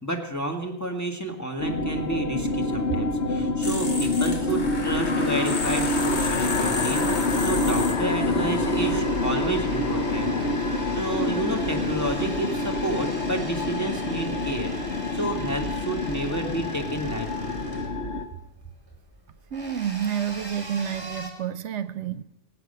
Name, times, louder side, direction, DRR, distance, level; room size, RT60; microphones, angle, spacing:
voice 1, 0.0-10.3 10.7-17.5, right 1 dB, 15° left, 1.8 m, -30 dB
sound 1, 1.6-18.3, left 2 dB, 70° left, 1.4 m, -26 dB
sound 2, 3.6-9.0, left 3 dB, 40° left, 1.5 m, -34 dB
sound 3, 7.7-21.3, right 1 dB, 20° right, 2.8 m, -41 dB
voice 2, 19.5-22.2, right 9 dB, 80° right, 1.0 m, -29 dB
18.5 x 8.3 x 6.8 m
omnidirectional pair, 1.2 m